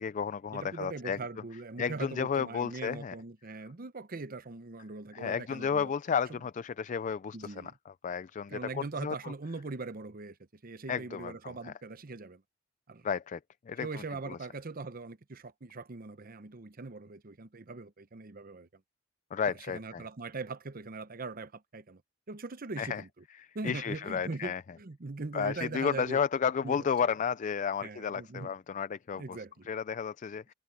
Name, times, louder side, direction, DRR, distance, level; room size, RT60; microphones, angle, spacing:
voice 1, 0.0-1.2 1.8-3.1 5.1-9.1 10.9-11.3 11.6-11.7 13.0-13.4 13.7-13.9 14.3-14.4 19.3-20.0 22.8-23.0 23.6-24.6 25.3-29.4 29.7-30.5, left 6 dB, 40° left, 0.4 m, -32 dB
voice 2, 0.5-5.9 6.3-6.4 7.3-7.8 8.5-10.4 10.6-12.4 12.9-13.1 13.8-18.7 19.5-22.0 22.3-23.1 23.5-26.2 26.6-27.1 27.8-28.5 29.1-29.7, right 3 dB, 45° right, 0.8 m, -41 dB
head